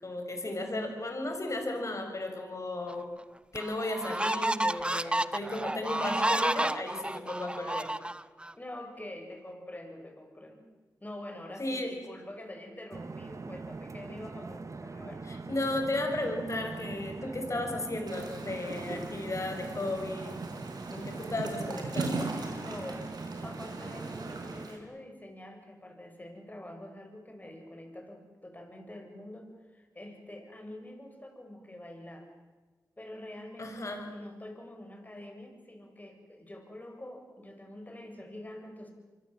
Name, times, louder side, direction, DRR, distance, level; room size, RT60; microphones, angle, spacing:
voice 1, 0.0-3.1 3.5-7.9 11.6-11.9 15.3-20.4 20.9-22.3 33.6-34.1, left 2 dB, 50° left, 4 dB, 6.6 m, -34 dB
sound 1, 2.9-3.0 3.6-8.5, right 1 dB, 15° right, 0.8 m, -31 dB
voice 2, 8.5-10.6 11.0-15.3 22.6-23.1 23.4-32.3 33.0-38.9, left 1 dB, 25° left, 4 dB, 7.6 m, -46 dB
sound 2, 12.9-24.7, right 3 dB, 50° right, 1.5 m, -42 dB
sound 3, 18.1-24.8, right 3 dB, 80° right, 5.0 m, -39 dB
26.0 x 24.5 x 7.7 m, 1.3 s
cardioid pair, 50°, 7 cm